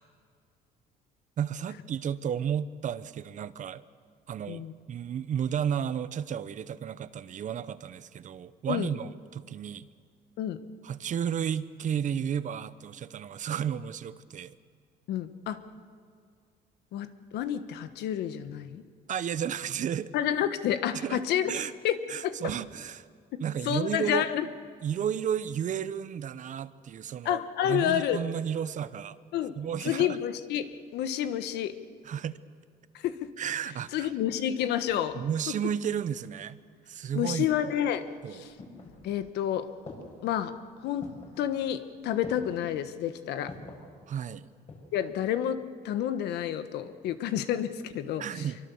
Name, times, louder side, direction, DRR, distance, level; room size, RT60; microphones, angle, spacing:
voice 1, 1.4-3.8 4.3-9.9 10.8-14.5 19.1-20.1 20.9-21.2 21.5-21.7 22.1-23.0 23.4-24.3 24.8-29.2 29.6-30.2 32.1-32.4 33.4-34.1 35.1-36.6 36.9-37.5 38.2-38.5 44.1-44.5 48.2-48.6, right 8 dB, 50° right, 15 dB, 0.9 m, -32 dB
voice 2, 15.1-15.6 16.9-18.8 20.1-21.5 21.8-22.4 23.3-24.5 27.2-28.2 29.3-29.6 29.8-31.8 32.9-33.2 33.9-35.2 37.1-38.5 39.0-39.7 40.2-40.6 40.8-41.1 41.4-43.5 44.9-45.6 45.8-48.5, left 10 dB, 80° left, 11 dB, 1.3 m, -29 dB
sound 1, 38.0-39.4 39.9-40.4 41.0-41.4 42.2-42.7 43.5-43.9 44.4-45.0 45.3-45.4, left 3 dB, 45° left, 7.4 m, -45 dB
25.0 x 23.5 x 7.1 m, 2.1 s
cardioid pair, 110°, 17 cm